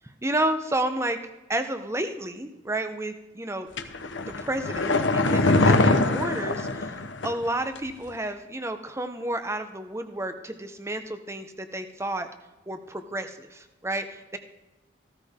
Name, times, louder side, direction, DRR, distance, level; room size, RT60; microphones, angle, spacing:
voice 1, 0.2-1.2 1.5-3.7 4.4-7.0 7.2-12.3 12.7-14.4, right 1 dB, 15° right, 8 dB, 0.9 m, -31 dB
sound 1, 3.8-7.5 7.8-7.9, left 2 dB, 75° left, 1.0 m, -23 dB
15.5 x 13.5 x 3.7 m, 1.0 s
head